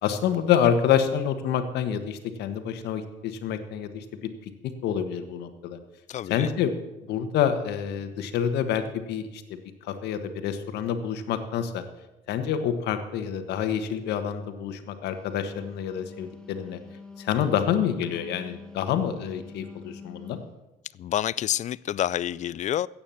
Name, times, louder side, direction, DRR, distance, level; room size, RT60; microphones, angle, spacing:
voice 1, 0.0-5.8 6.3-6.7 7.1-11.8 12.3-16.8 17.2-20.4, left 8 dB, 80° left, 9 dB, 1.5 m, -27 dB
voice 2, 6.1-6.5 21.0-22.9, left 11 dB, 45° left, 22 dB, 0.4 m, -28 dB
Wind instrument woodwind instrument, 15.2-20.6, left 4 dB, 5° left, 1.8 m, -45 dB
14.5 x 8.8 x 7.1 m, 1.0 s
cardioid pair, 110°, 17 cm